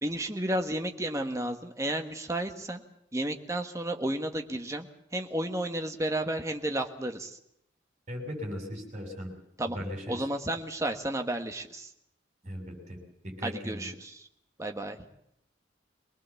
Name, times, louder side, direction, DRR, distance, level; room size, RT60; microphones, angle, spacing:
voice 1, 0.0-2.8 3.1-7.4 9.6-9.8 10.1-11.9 13.4-14.3 14.6-15.0, right 1 dB, 15° right, 5 dB, 1.4 m, -32 dB
voice 2, 8.1-9.3 9.7-10.2 12.4-13.9, equal, 35° right, 1 dB, 6.9 m, -38 dB
24.0 x 19.5 x 7.1 m, 0.74 s
head